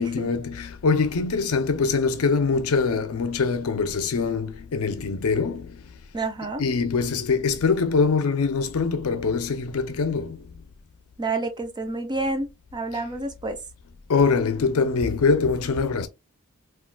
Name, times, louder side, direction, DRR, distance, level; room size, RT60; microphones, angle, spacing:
voice 1, 0.0-5.8 6.6-10.4 14.1-16.1, left 4 dB, 80° left, 0.5 m, -23 dB
voice 2, 6.1-6.6 11.2-13.6, right 2 dB, 20° right, 0.4 m, -29 dB
3.7 x 2.4 x 2.2 m
head